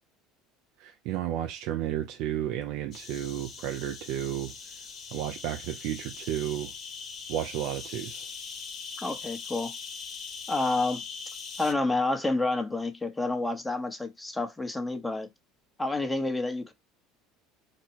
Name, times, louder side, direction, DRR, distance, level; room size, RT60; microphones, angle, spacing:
voice 1, 0.8-4.5 5.1-6.7 7.3-8.3, right 12 dB, 70° right, 0.6 m, -32 dB
sound 1, 2.9-11.7, left 5 dB, 40° left, 1.2 m, -41 dB
voice 2, 9.0-9.7 10.5-11.0 11.6-15.3 15.8-16.7, left 2 dB, 10° left, 1.0 m, -29 dB
4.2 x 2.2 x 4.5 m
supercardioid pair, 95°, 0 cm